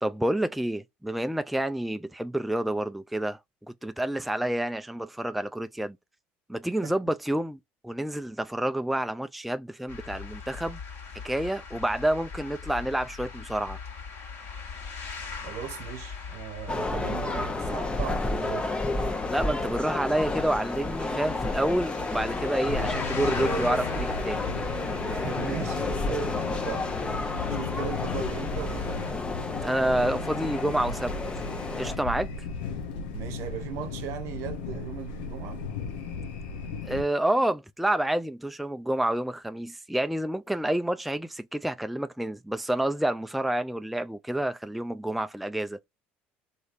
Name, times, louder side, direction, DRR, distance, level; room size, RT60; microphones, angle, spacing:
voice 1, 0.0-3.4 3.7-6.0 6.5-10.8 11.1-13.8 19.3-24.5 29.6-31.4 31.8-32.5 36.8-45.8, right 1 dB, ahead, 0.3 m, -29 dB
sound 1, 9.9-29.1, left 5 dB, 50° left, 1.5 m, -40 dB
voice 2, 15.4-18.7 25.1-27.0 27.5-29.2 33.1-35.6, right 10 dB, 65° right, 0.8 m, -38 dB
sound 2, 16.7-32.0, left 2 dB, 20° left, 0.8 m, -31 dB
sound 3, 22.6-37.0, left 4 dB, 80° left, 0.7 m, -36 dB
3.0 x 2.8 x 2.5 m
hypercardioid pair, 70°, 5 cm